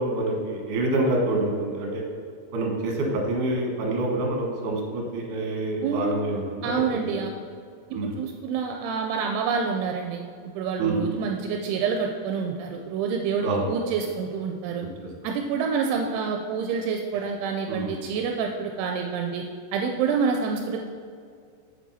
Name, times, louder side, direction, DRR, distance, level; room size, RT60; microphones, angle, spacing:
voice 1, 0.0-1.9 2.5-6.8 7.1-7.2 7.9-8.1 10.8-11.0 13.4-13.6 17.7-17.9, right 2 dB, 60° right, 0 dB, 2.6 m, -26 dB
voice 2, 5.8-6.1 6.6-7.3 7.9-14.8 15.2-19.4 19.7-20.9, right 5 dB, 85° right, 3 dB, 2.6 m, -27 dB
7.5 x 7.3 x 4.1 m, 2.2 s
omnidirectional pair, 4.7 m